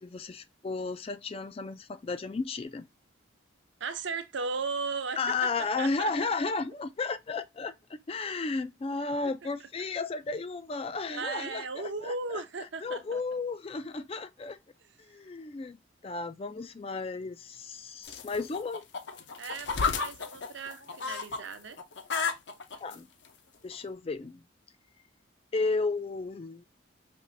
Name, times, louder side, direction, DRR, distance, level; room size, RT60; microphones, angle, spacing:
voice 1, 0.0-2.9 5.2-12.4 12.8-14.6 15.0-15.8 16.0-18.8 22.8-23.1 23.6-24.4 25.5-26.6, left 4 dB, 30° left, 0.3 m, -33 dB
voice 2, 3.8-5.2 5.8-6.3 8.2-8.3 8.9-9.1 11.1-13.2 19.4-21.8, right 4 dB, 65° right, 0.7 m, -36 dB
Chickens in the coop morning, 18.0-21.4 21.7-22.9 23.7-23.8, left 5 dB, 60° left, 0.7 m, -32 dB
5.3 x 3.0 x 2.5 m
head